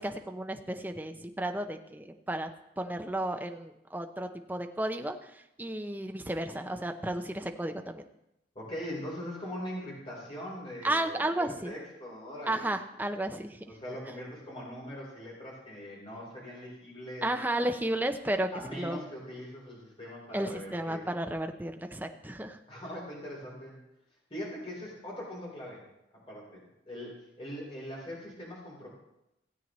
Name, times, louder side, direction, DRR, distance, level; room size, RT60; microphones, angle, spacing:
voice 1, 0.0-2.5 2.8-8.0 10.8-11.7 12.5-13.6 17.2-18.5 18.8-19.0 20.3-22.6, right 1 dB, 10° right, 5 dB, 0.6 m, -33 dB
voice 2, 8.6-12.7 13.7-17.3 18.5-21.2 22.7-23.8 24.3-25.8 26.1-28.9, equal, 30° left, -4 dB, 3.7 m, -41 dB
16.0 x 8.5 x 3.1 m, 0.86 s
head